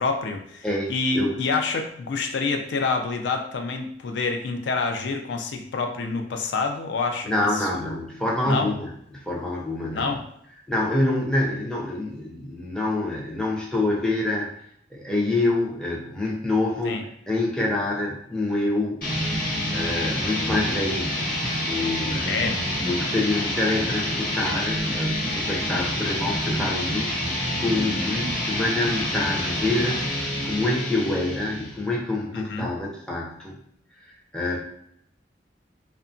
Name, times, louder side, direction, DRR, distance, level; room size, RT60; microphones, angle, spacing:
voice 1, 0.0-8.0 8.5-8.7 9.9-10.2 16.8-17.0 22.3-22.6 32.3-32.7, left 4 dB, 75° left, 5 dB, 0.3 m, -27 dB
voice 2, 0.6-1.4 7.2-10.2 10.7-14.5 14.9-17.0 17.3-19.0 19.7-21.2 21.7-22.5 22.8-30.0 30.4-33.6 34.3-34.6, left 2 dB, 5° left, -3 dB, 0.4 m, -26 dB
sound 1, 19.0-31.8, left 1 dB, 50° left, 1.0 m, -27 dB
2.8 x 2.2 x 2.5 m, 0.70 s
head